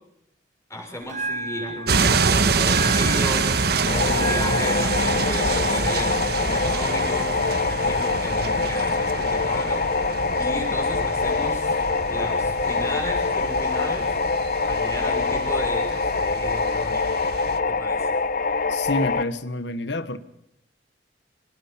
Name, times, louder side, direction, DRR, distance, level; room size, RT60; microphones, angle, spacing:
voice 1, 0.7-7.3 7.7-10.1 10.4-11.8 12.1-14.1 14.6-17.2 17.7-18.2, left 1 dB, 15° left, 2 dB, 6.5 m, -34 dB
Bell, 1.0-9.0, right 3 dB, 45° right, 1.4 m, -36 dB
sound 1, 1.9-17.6, right 4 dB, 60° right, 1.5 m, -26 dB
sound 2, 3.9-19.2, left 4 dB, 50° left, 1.0 m, -24 dB
voice 2, 18.7-20.2, left 2 dB, 75° left, 13 dB, 1.5 m, -28 dB
24.5 x 20.0 x 5.9 m, 0.77 s
head